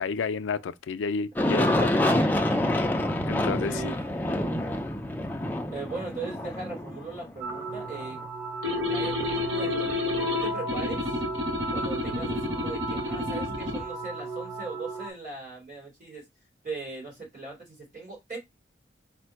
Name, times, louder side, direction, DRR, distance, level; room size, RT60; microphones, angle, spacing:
voice 1, 0.0-2.1 3.3-3.9, left 5 dB, 90° left, 0.4 m, -31 dB
Aircraft, 1.4-8.1, left 1 dB, 10° left, 0.3 m, -27 dB
voice 2, 1.4-2.7 3.6-4.8 5.7-8.2 8.9-11.1 11.7-16.2 16.6-18.4, right 3 dB, 45° right, 2.8 m, -39 dB
sound 1, 7.4-15.1, right 2 dB, 15° right, 0.8 m, -34 dB
sound 2, 8.6-13.9, left 3 dB, 80° right, 1.1 m, -30 dB
4.3 x 2.1 x 4.5 m
head